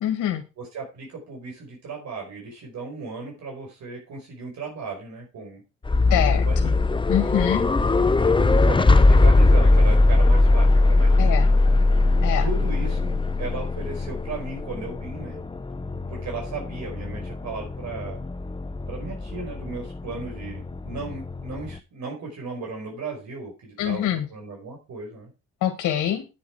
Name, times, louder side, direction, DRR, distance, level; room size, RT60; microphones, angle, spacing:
voice 1, 0.0-0.4 6.1-6.5 7.1-7.6 11.2-11.5 12.2-12.5 23.8-24.2 25.6-26.3, left 11 dB, 85° left, 6 dB, 1.8 m, -24 dB
voice 2, 0.6-5.6 6.1-6.8 8.2-11.3 12.4-15.4 16.1-18.2 18.9-25.3, right 4 dB, 65° right, 0 dB, 5.2 m, -36 dB
sound 1, 5.9-21.8, left 2 dB, 15° left, 0.8 m, -20 dB
9.7 x 7.3 x 4.8 m, 0.29 s
cardioid pair, 90°, 30 cm